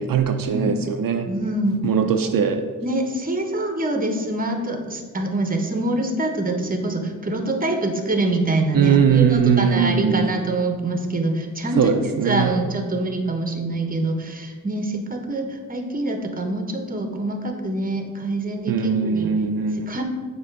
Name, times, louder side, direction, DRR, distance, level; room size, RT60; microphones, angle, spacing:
voice 1, 0.0-1.3 1.8-2.6 8.7-10.3 11.8-12.5 18.7-20.0, right 7 dB, 70° right, 5 dB, 0.5 m, -20 dB
voice 2, 1.3-1.9 2.2-2.3 2.8-11.9 12.2-19.3 19.9-20.0, right 2 dB, 25° right, 4 dB, 0.9 m, -25 dB
7.8 x 3.0 x 5.8 m, 1.5 s
wide cardioid pair, 110°, 35 cm